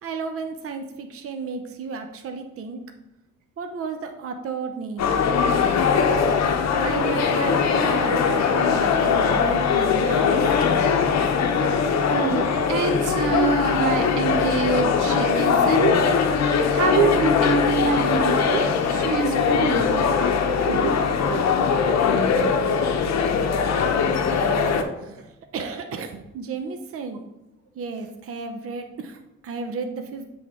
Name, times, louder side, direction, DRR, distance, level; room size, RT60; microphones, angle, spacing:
voice 1, 0.0-2.8 3.6-5.1 6.8-10.5 24.3-27.2 27.8-30.2, right 4 dB, 50° right, 6 dB, 0.7 m, -33 dB
sound 1, 5.0-24.8, left 6 dB, 60° left, 0.7 m, -21 dB
voice 2, 12.1-16.1 16.7-19.9 20.6-20.9 21.3-21.7, right 4 dB, 85° right, 4 dB, 1.0 m, -25 dB
7.7 x 3.4 x 3.6 m, 0.97 s
cardioid pair, 90°, 30 cm